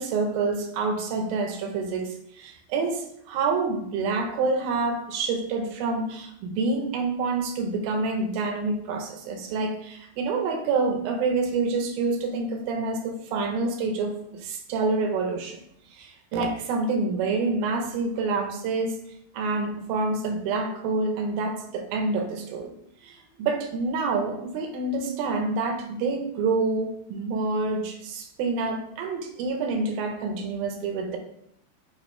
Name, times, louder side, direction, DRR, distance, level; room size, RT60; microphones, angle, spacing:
voice 1, 0.0-2.1 2.4-15.6 15.9-19.0 19.3-22.7 23.0-31.2, right 3 dB, 75° right, 4 dB, 2.3 m, -27 dB
8.3 x 2.9 x 4.3 m, 0.73 s
omnidirectional pair, 4.6 m